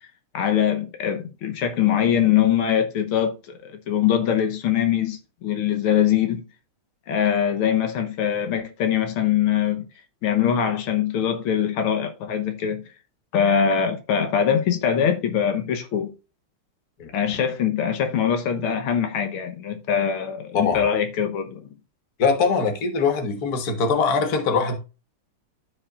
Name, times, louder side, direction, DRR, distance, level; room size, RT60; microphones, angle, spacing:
voice 1, 0.3-6.4 7.1-9.8 10.2-12.8 13.3-16.1 17.1-21.7, left 8 dB, 80° left, 1.9 m, -22 dB
voice 2, 22.2-24.8, left 5 dB, 50° left, 1.7 m, -22 dB
13.5 x 5.0 x 2.4 m
omnidirectional pair, 2.3 m